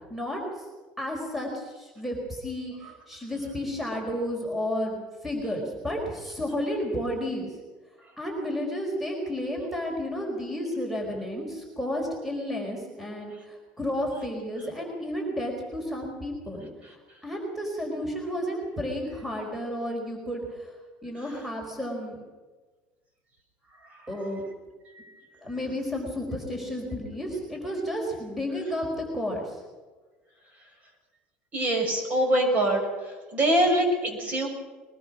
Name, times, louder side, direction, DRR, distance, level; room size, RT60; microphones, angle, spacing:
voice 1, 0.1-0.7 1.0-7.6 8.2-20.7 21.0-22.2 24.1-24.4 25.4-29.6, equal, 5° right, 1 dB, 4.8 m, -32 dB
voice 2, 31.5-34.5, right 1 dB, 35° right, 3 dB, 6.5 m, -24 dB
22.5 x 20.0 x 6.2 m, 1.3 s
cardioid pair, 120°, 4 cm